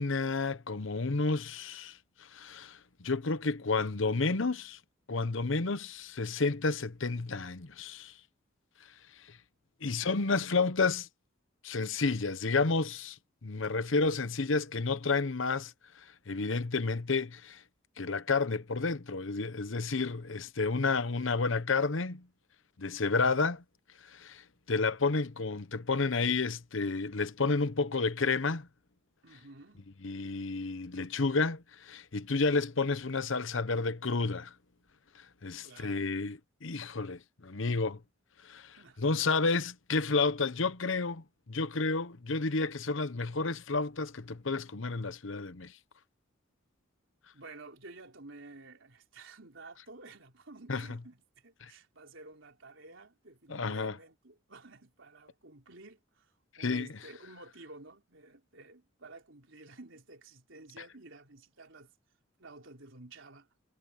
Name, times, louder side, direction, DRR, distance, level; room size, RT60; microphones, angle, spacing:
voice 1, 0.0-4.8 5.1-8.1 9.3-9.4 9.8-11.1 11.6-17.6 18.0-22.3 22.8-23.6 24.1-28.7 30.0-34.5 35.4-38.0 38.4-45.7 50.7-50.8 51.6-51.7 53.5-53.9 56.6-56.9, left 4 dB, 70° left, 0.9 m, -31 dB
voice 2, 9.9-10.5 29.2-29.9 35.6-36.0 38.8-39.3 47.3-61.9 62.4-63.5, right 2 dB, 70° right, 3.8 m, -52 dB
head